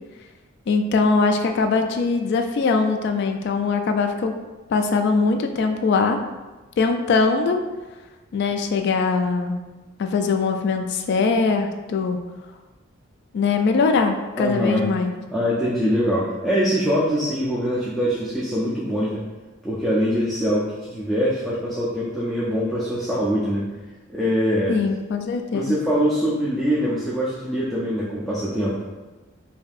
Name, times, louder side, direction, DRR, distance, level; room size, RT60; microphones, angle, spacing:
voice 1, 0.7-4.3 4.7-6.2 6.8-7.6 8.3-9.6 10.0-12.2 13.3-15.1 24.7-25.8, left 4 dB, 55° left, 5 dB, 0.3 m, -21 dB
voice 2, 14.4-14.9 15.3-19.2 19.6-23.7 24.1-24.7 25.5-28.9, equal, ahead, -8 dB, 0.5 m, -23 dB
5.2 x 2.7 x 2.4 m, 1.2 s
head